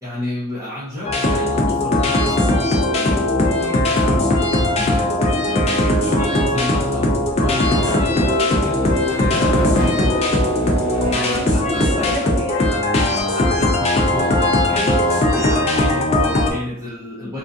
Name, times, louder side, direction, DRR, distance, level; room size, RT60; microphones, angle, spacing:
voice 1, 0.0-10.0 11.1-11.6 12.0-12.1 13.3-17.4, left 1 dB, 15° right, -11 dB, 0.6 m, -31 dB
sound 1, 1.0-16.5, left 1 dB, 30° left, 0.3 m, -18 dB
sound 2, 4.5-5.8 6.5-6.7 7.0-8.2 8.9-10.5 11.0-12.5 12.8-12.9 13.2-14.4, equal, 70° left, 0.7 m, -35 dB
Race car auto racing / Accelerating revving vroom, 6.5-12.1, left 1 dB, 50° left, 1.0 m, -31 dB
voice 2, 10.2-13.2, right 1 dB, 55° right, -9 dB, 0.8 m, -32 dB
2.3 x 2.3 x 2.6 m, 0.78 s
head